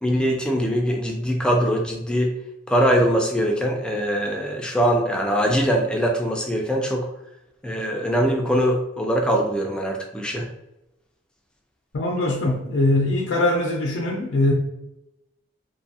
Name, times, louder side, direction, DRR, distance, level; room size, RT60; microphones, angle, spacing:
voice 1, 0.0-2.3 2.7-7.1 7.6-10.5, equal, 5° left, 1 dB, 0.3 m, -22 dB
voice 2, 11.9-14.5, left 2 dB, 80° left, 0 dB, 0.4 m, -22 dB
2.6 x 2.3 x 2.6 m, 0.91 s
head